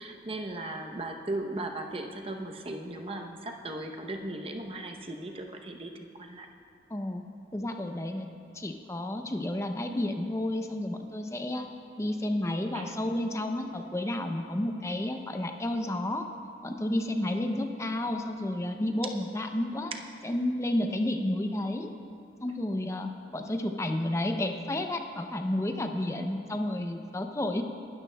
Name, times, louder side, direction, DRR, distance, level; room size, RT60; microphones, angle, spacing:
voice 1, 0.0-5.9 6.2-6.5 12.7-13.0 19.9-20.0, right 2 dB, 30° right, 3 dB, 0.8 m, -37 dB
voice 2, 6.9-7.2 7.5-8.3 8.5-11.7 12.0-16.3 16.6-19.9 20.2-21.9 22.4-27.6, left 1 dB, 15° left, 5 dB, 0.5 m, -31 dB
20.5 x 12.5 x 2.3 m, 2.5 s
head